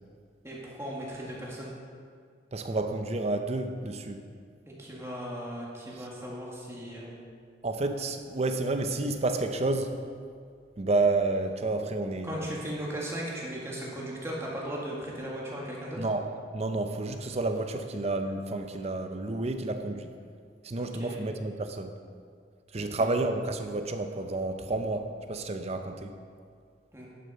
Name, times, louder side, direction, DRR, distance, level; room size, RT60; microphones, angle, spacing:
voice 1, 0.4-1.7 4.7-7.2 12.2-16.1 20.7-21.2 23.0-23.1 26.9-27.1, equal, 15° right, -4 dB, 1.9 m, -37 dB
voice 2, 2.5-4.3 7.6-9.9 10.8-12.6 16.0-16.2 16.5-20.1 20.6-21.9 22.7-26.1, right 2 dB, 35° right, 7 dB, 0.6 m, -30 dB
11.0 x 6.6 x 5.4 m, 2.1 s
head